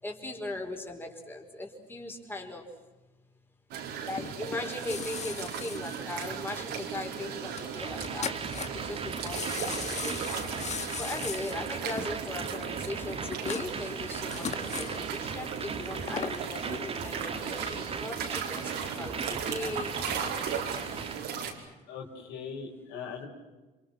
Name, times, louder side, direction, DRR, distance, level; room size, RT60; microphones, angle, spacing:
voice 1, 0.0-2.7 4.0-8.3 8.7-10.1 11.0-18.7 19.0-20.0, left 2 dB, 10° left, 1 dB, 4.9 m, -39 dB
sound 1, 3.7-21.5, right 7 dB, 85° right, 5.0 m, -37 dB
sound 2, 4.1-6.8 7.1-7.2 7.6-7.7 7.9-8.9 9.2-15.0 15.8-16.5 17.0-17.1, left 7 dB, 40° left, 1.9 m, -38 dB
sound 3, 7.8-21.2, right 5 dB, 35° right, 2.4 m, -39 dB
voice 2, 21.9-23.3, left 6 dB, 90° left, 1 dB, 6.4 m, -40 dB
29.5 x 27.0 x 6.3 m, 1.1 s
cardioid pair, 110°, 17 cm